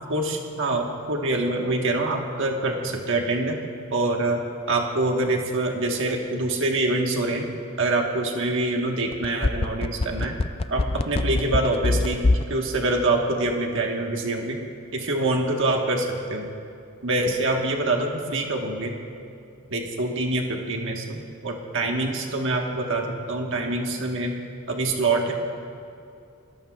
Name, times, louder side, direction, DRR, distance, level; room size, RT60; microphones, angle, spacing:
voice 1, 0.1-3.6 3.9-7.5 7.8-10.3 10.7-14.6 14.9-16.5 17.0-19.0 19.7-24.4 24.7-25.3, right 2 dB, 60° right, 1 dB, 1.5 m, -25 dB
sound 1, 9.1-12.5 12.8-12.9, left 2 dB, 25° left, 0.4 m, -22 dB
30.0 x 14.0 x 2.4 m, 2.5 s
head